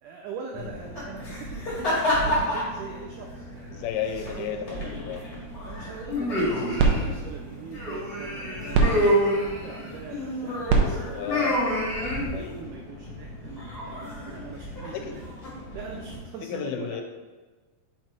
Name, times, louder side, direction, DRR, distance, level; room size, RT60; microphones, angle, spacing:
voice 1, 0.0-3.9 4.3-5.0 5.6-11.3 12.0-15.3 15.7-17.0, right 5 dB, 90° right, 1 dB, 1.8 m, -42 dB
sound 1, 0.6-16.2, equal, 35° left, 1.8 m, -30 dB
voice 2, 3.7-5.2 11.1-11.6 12.3-12.6 14.9-15.1 16.5-17.0, left 8 dB, 90° left, 5 dB, 2.6 m, -32 dB
sound 2, 6.2-12.6, right 4 dB, 75° right, 2.0 m, -29 dB
5.5 x 4.7 x 4.5 m, 1.3 s
omnidirectional pair, 4.3 m